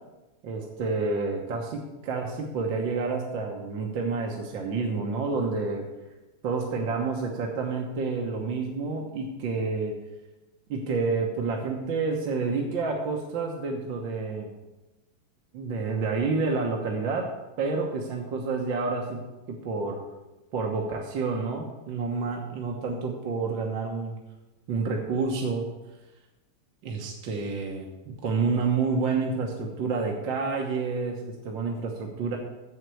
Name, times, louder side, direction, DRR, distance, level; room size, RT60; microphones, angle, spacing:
voice 1, 0.4-5.8 6.4-10.0 10.7-14.5 15.5-17.3 17.6-19.2 19.5-20.0 20.5-24.2 24.7-25.7 26.8-32.4, right 4 dB, 60° right, 0 dB, 1.9 m, -29 dB
7.9 x 7.5 x 8.2 m, 1.1 s
omnidirectional pair, 2.4 m